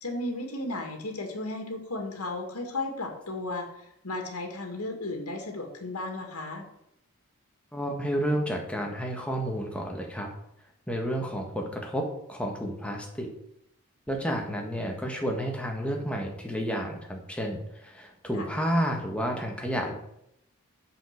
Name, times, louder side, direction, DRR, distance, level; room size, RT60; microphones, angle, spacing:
voice 1, 0.0-6.6 18.3-18.5, left 2 dB, 85° left, 4 dB, 2.0 m, -34 dB
voice 2, 7.7-10.3 10.9-13.3 14.1-19.9, equal, 5° left, 1 dB, 1.7 m, -31 dB
7.8 x 7.4 x 6.6 m, 0.77 s
head